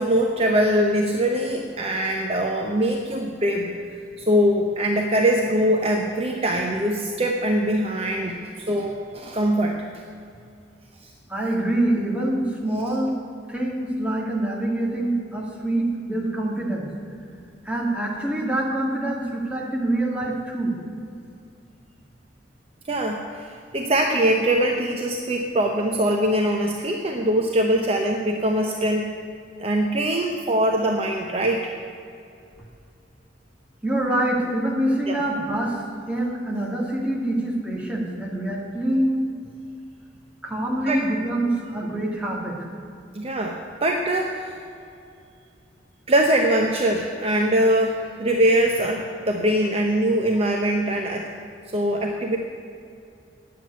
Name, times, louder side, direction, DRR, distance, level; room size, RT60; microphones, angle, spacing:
voice 1, 0.0-3.7 4.2-9.8 22.9-29.1 29.6-31.7 35.1-35.2 40.9-41.0 43.1-44.6 46.1-51.3 51.7-52.4, right 1 dB, 35° right, 2 dB, 0.8 m, -22 dB
voice 2, 11.3-13.2 13.5-16.9 17.6-20.7 33.8-39.2 40.4-42.6, right 1 dB, 5° right, -3 dB, 2.0 m, -25 dB
9.4 x 7.5 x 9.2 m, 2.5 s
head